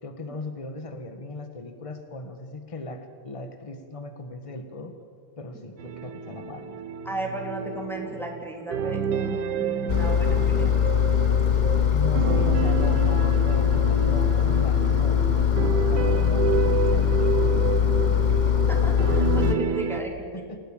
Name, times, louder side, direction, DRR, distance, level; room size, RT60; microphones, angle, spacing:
voice 1, 0.0-4.9 5.4-6.7 11.9-15.3 15.9-17.7 20.3-20.6, left 3 dB, 20° left, 7 dB, 1.6 m, -37 dB
sound 1, 5.8-20.0, right 7 dB, 65° right, 1.6 m, -30 dB
voice 2, 7.0-10.8 18.6-20.4, right 1 dB, ahead, 0 dB, 3.2 m, -35 dB
Engine, 9.9-19.5, left 9 dB, 70° left, 0.4 m, -21 dB
28.5 x 17.5 x 7.4 m, 2.1 s
omnidirectional pair, 2.1 m